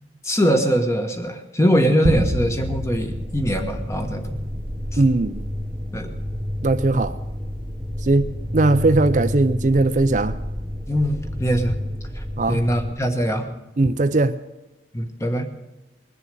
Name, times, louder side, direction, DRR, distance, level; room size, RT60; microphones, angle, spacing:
voice 1, 0.2-4.4 4.9-5.0 5.9-6.2 10.9-11.8 12.2-13.5 14.9-15.5, equal, 15° left, 1.4 m, -22 dB
sound 1, 2.0-4.6, equal, 85° right, 1.4 m, -28 dB
sound 2, 2.1-13.0, equal, 10° right, 1.0 m, -30 dB
voice 2, 5.0-5.4 6.6-7.1 8.0-10.4 12.4-12.6 13.8-14.4, right 2 dB, 45° right, 0.5 m, -19 dB
20.5 x 6.9 x 9.0 m
head